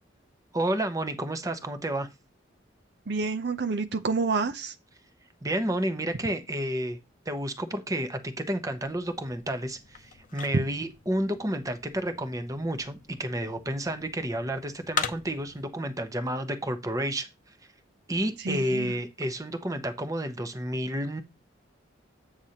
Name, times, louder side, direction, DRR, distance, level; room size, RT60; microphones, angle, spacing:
voice 1, 0.5-2.1 5.4-7.0 7.3-17.3 18.1-21.2, right 1 dB, 20° right, 0.9 m, -30 dB
voice 2, 3.1-4.7 18.4-18.9, right 4 dB, 60° right, 0.6 m, -28 dB
sound 1, 8.8-15.6, left 6 dB, 45° left, 0.7 m, -40 dB
8.8 x 6.4 x 2.9 m
head